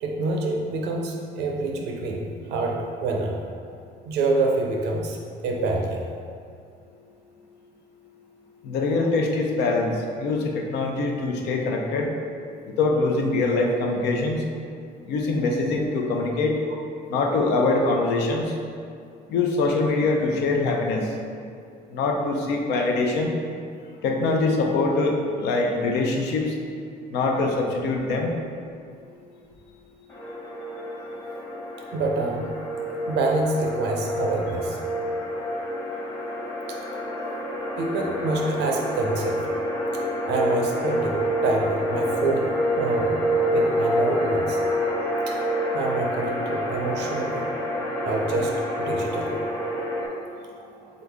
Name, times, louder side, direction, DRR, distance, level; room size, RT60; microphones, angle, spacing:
voice 1, 0.0-3.4 4.0-6.0 31.9-32.5 33.1-34.8 36.7-36.8 37.8-39.4 40.3-43.2 43.5-44.6 45.3-45.4 45.7-47.5 48.0-49.4 50.7-50.8, right 3 dB, 85° right, 0 dB, 0.7 m, -27 dB
voice 2, 8.6-12.1 12.8-14.4 15.1-16.5 17.1-18.5 19.3-21.1 21.9-23.3 24.0-26.6 27.1-28.3, left 3 dB, 80° left, 1 dB, 0.7 m, -23 dB
sound 1, 30.1-50.1, equal, 20° left, 0.9 m, -27 dB
4.0 x 3.8 x 3.5 m, 2.4 s
cardioid pair, 110°, 17 cm